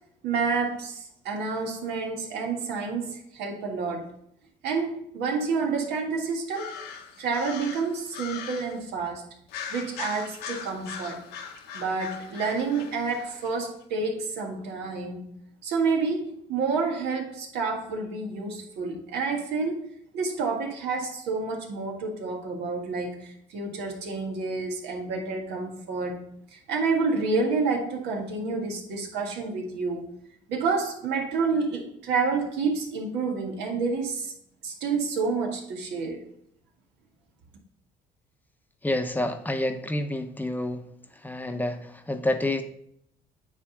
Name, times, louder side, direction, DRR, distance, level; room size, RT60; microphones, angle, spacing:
voice 1, 0.2-4.1 4.6-6.7 7.2-9.2 9.7-11.2 11.7-15.3 15.6-19.8 20.1-26.2 26.5-30.0 30.5-34.3 34.6-36.2, right 4 dB, 80° right, 1.8 m, -29 dB
sound 1, 6.5-8.8 9.5-13.5, left 7 dB, 90° left, 1.1 m, -40 dB
voice 2, 38.8-40.8 41.1-42.6, left 1 dB, 10° left, 0.8 m, -28 dB
9.4 x 3.7 x 5.0 m
cardioid pair, 110°, 17 cm